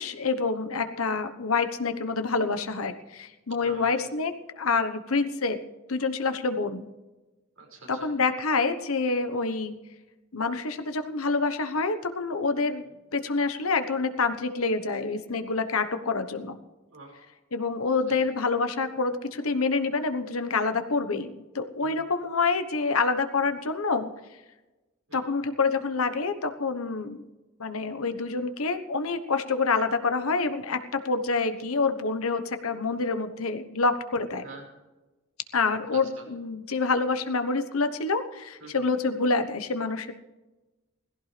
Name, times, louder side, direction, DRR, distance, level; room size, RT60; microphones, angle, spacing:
voice 1, 0.0-5.6 5.9-6.8 7.9-9.7 10.3-12.8 13.1-16.6 17.5-24.1 25.1-27.2 27.6-34.5 35.5-40.1, left 4 dB, 85° left, 10 dB, 1.2 m, -27 dB
voice 2, 3.6-4.1 7.6-8.1 16.9-17.3 18.1-18.2 21.8-22.0 25.1-25.2 34.4-34.6 35.9-36.2 38.6-38.8, right 3 dB, 80° right, -1 dB, 5.6 m, -45 dB
18.0 x 16.0 x 3.4 m, 1.1 s
head